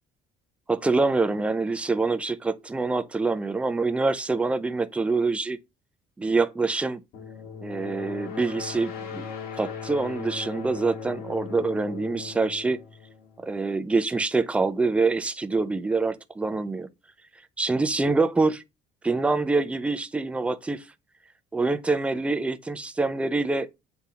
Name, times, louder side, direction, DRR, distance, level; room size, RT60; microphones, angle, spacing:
voice 1, 0.7-5.6 6.2-7.0 7.6-9.3 9.6-12.8 13.4-16.9 17.6-18.6 19.0-20.8 21.5-23.7, right 3 dB, 10° right, 0.4 m, -25 dB
sound 1, 7.1-13.8, left 6 dB, 75° left, 1.9 m, -38 dB
7.3 x 3.5 x 3.9 m
cardioid pair, 165°, 16 cm